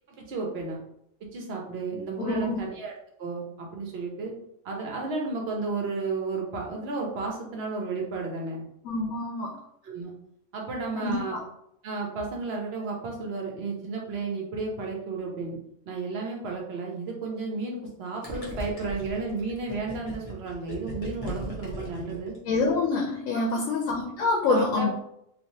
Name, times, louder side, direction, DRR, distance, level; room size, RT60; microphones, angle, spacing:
voice 1, 0.1-0.8 1.3-2.9 3.2-4.3 4.6-8.6 9.8-10.1 10.5-11.4 11.8-15.6 15.9-22.3 23.3-23.7 24.5-24.9, right 3 dB, 55° right, 0 dB, 1.0 m, -33 dB
voice 2, 2.2-2.6 8.8-9.6 10.9-11.4 22.5-24.9, left 3 dB, 90° left, 0 dB, 1.0 m, -26 dB
Gurgling, 18.2-22.9, equal, 35° left, 0.8 m, -38 dB
3.1 x 2.6 x 2.7 m, 0.75 s
omnidirectional pair, 1.3 m